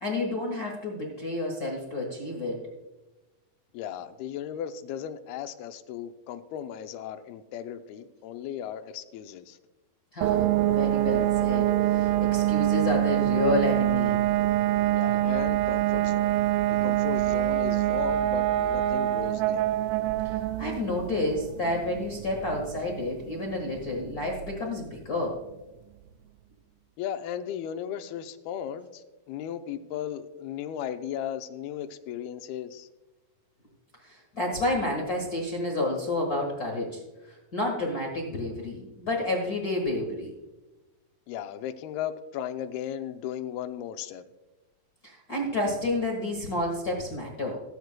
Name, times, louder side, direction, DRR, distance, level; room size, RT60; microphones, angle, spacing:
voice 1, 0.0-2.7 10.1-14.2 20.2-25.4 34.0-40.3 45.0-47.6, left 2 dB, 65° left, 0 dB, 0.9 m, -30 dB
voice 2, 3.7-9.6 14.9-16.4 16.7-19.8 27.0-32.9 41.3-44.2, left 10 dB, 85° left, 8 dB, 2.5 m, -36 dB
sound 1, 10.2-24.8, right 14 dB, 90° right, 1.8 m, -26 dB
19.0 x 9.4 x 2.2 m, 1.1 s
omnidirectional pair, 4.3 m